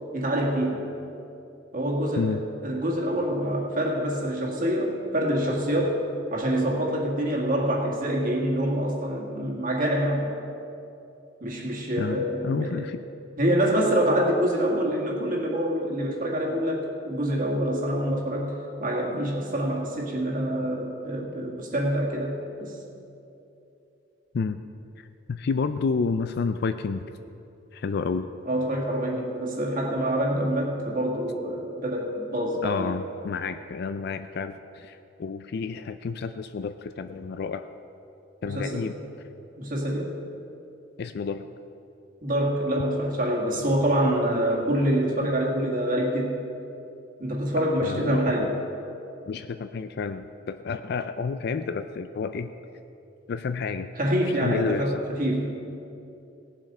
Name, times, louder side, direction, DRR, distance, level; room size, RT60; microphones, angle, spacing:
voice 1, 0.1-0.8 1.7-6.0 6.3-10.3 11.4-12.8 13.4-18.5 18.8-22.8 28.5-32.9 38.5-38.9 39.6-40.1 42.2-46.4 47.2-48.5 54.0-55.5, right 1 dB, 50° right, -1 dB, 2.0 m, -26 dB
voice 2, 12.0-13.0 24.3-24.6 25.0-27.0 27.7-28.3 32.6-37.7 38.4-38.9 41.0-41.5 47.8-48.5 49.3-52.5 53.3-53.9 54.4-55.0, left 5 dB, 60° left, 10 dB, 0.4 m, -30 dB
17.0 x 7.5 x 5.4 m, 2.8 s
head